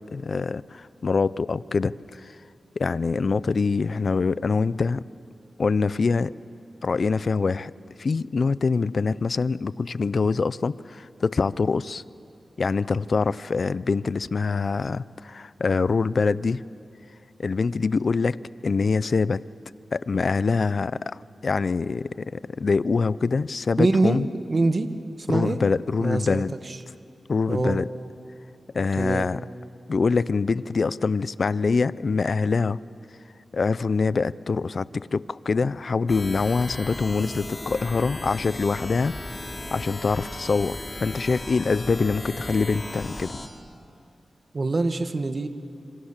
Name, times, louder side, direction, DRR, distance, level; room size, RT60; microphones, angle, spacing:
voice 1, 0.1-2.4 2.8-5.0 5.6-6.4 6.8-7.7 8.0-12.0 12.6-16.6 17.4-18.4 18.6-19.4 19.9-24.3 25.3-26.5 27.3-27.9 28.7-29.4 29.9-32.8 33.5-39.1 39.7-43.3, left 4 dB, 65° left, 18 dB, 0.5 m, -24 dB
voice 2, 23.8-24.9 25.2-25.6 26.0-26.8 27.5-27.8 29.0-29.3 44.5-45.5, right 3 dB, 50° right, 8 dB, 1.7 m, -24 dB
sound 1, 36.1-43.5, left 1 dB, 30° left, 3.6 m, -36 dB
26.5 x 25.0 x 7.4 m, 2.4 s
cardioid pair, 45°, 0 cm